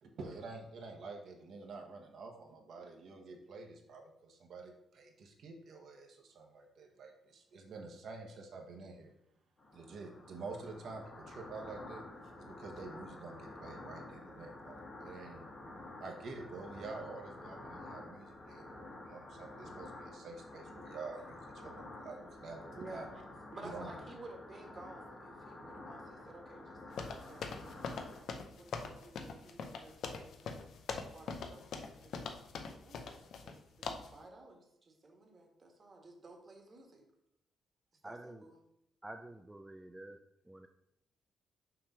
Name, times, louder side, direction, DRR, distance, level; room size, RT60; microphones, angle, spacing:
voice 1, 0.0-9.1 9.7-12.0 12.4-15.5 16.0-23.1 23.6-23.9, right 3 dB, 65° right, 2 dB, 1.2 m, -48 dB
sound 1, 9.6-28.2, left 2 dB, 35° left, 1.5 m, -50 dB
voice 2, 22.7-23.1 23.5-30.7 31.1-32.3 32.6-37.0 38.0-38.6, right 2 dB, 35° right, 2 dB, 1.4 m, -54 dB
sound 2, 27.0-33.6 33.8-34.2, left 5 dB, 70° left, 0.6 m, -42 dB
voice 3, 38.0-38.5 39.0-40.2 40.5-40.7, right 1 dB, 10° right, 5 dB, 0.3 m, -49 dB
5.9 x 3.3 x 5.5 m, 0.80 s
cardioid pair, 115°, 0 cm